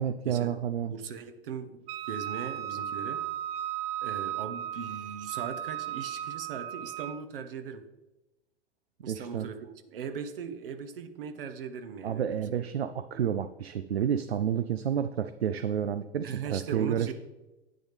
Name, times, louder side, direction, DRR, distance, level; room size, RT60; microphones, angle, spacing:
voice 1, 0.0-0.9 9.1-9.5 12.0-17.1, right 9 dB, 80° right, 11 dB, 0.5 m, -30 dB
voice 2, 0.8-3.2 4.0-7.8 9.0-12.4 16.2-17.1, right 6 dB, 60° right, 9 dB, 1.1 m, -39 dB
Wind instrument woodwind instrument, 1.9-7.2, right 11 dB, 20° right, 0.3 m, -35 dB
10.0 x 8.7 x 3.4 m, 1.0 s
figure-of-eight pair, 95°, 31 cm